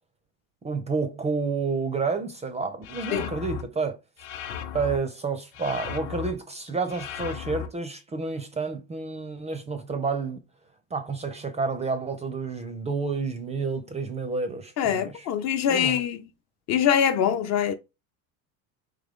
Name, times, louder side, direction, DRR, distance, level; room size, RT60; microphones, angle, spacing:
voice 1, 0.6-4.0 4.7-10.4 10.9-15.3 15.7-16.0, right 4 dB, 15° right, 0.4 m, -30 dB
sound 1, 2.8-3.6 4.2-5.0 5.5-6.3 6.9-7.7, left 9 dB, 55° left, 0.9 m, -35 dB
voice 2, 14.8-16.2 16.7-17.7, left 8 dB, 40° left, 0.5 m, -23 dB
3.8 x 3.0 x 3.5 m
supercardioid pair, 115°, 44 cm